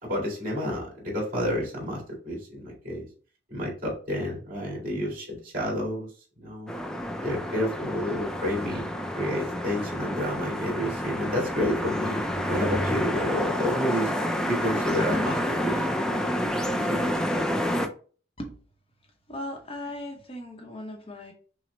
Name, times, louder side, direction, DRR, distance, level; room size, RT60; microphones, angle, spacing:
voice 1, 0.0-3.1 3.5-6.7 7.2-12.2 12.5-14.1 14.5-16.3 16.7-17.3, left 1 dB, 50° right, -3 dB, 2.0 m, -30 dB
sound 1, 6.7-17.9, equal, 5° left, 0.3 m, -29 dB
voice 2, 19.3-21.3, left 1 dB, 30° left, 2 dB, 0.7 m, -37 dB
5.8 x 2.0 x 3.2 m, 0.40 s
head